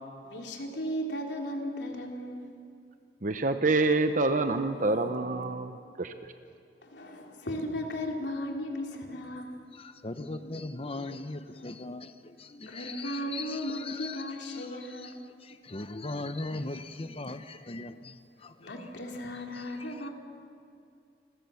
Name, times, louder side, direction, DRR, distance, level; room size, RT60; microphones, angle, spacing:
voice 1, 0.2-2.5 6.8-9.5 11.5-11.8 12.7-15.2 16.7-16.9 18.6-20.1, equal, 85° left, 1 dB, 3.5 m, -36 dB
voice 2, 3.2-6.1, right 3 dB, 50° right, 8 dB, 0.9 m, -27 dB
voice 3, 9.8-14.2 14.5-14.7 15.5-18.1 18.4-18.5, left 2 dB, 35° left, 10 dB, 1.0 m, -39 dB
29.0 x 22.5 x 7.2 m, 2.4 s
head